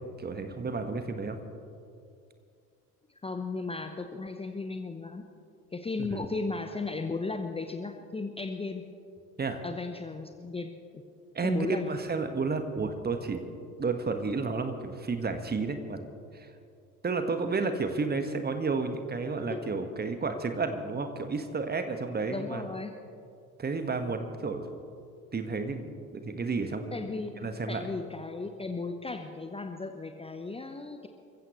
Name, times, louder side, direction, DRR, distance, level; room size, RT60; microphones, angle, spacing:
voice 1, 0.2-1.4 6.0-6.2 9.4-9.6 11.3-13.4 13.8-16.0 16.3-16.5 17.0-22.6 23.6-24.7 25.3-27.1 27.4-27.8, right 4 dB, 20° right, 7 dB, 1.5 m, -31 dB
voice 2, 3.2-5.2 5.7-8.9 9.6-11.0 11.4-11.9 19.5-19.7 22.3-22.9 26.9-31.1, left 3 dB, 15° left, 6 dB, 0.9 m, -35 dB
28.0 x 15.5 x 3.2 m, 2.4 s
figure-of-eight pair, 60°, 44 cm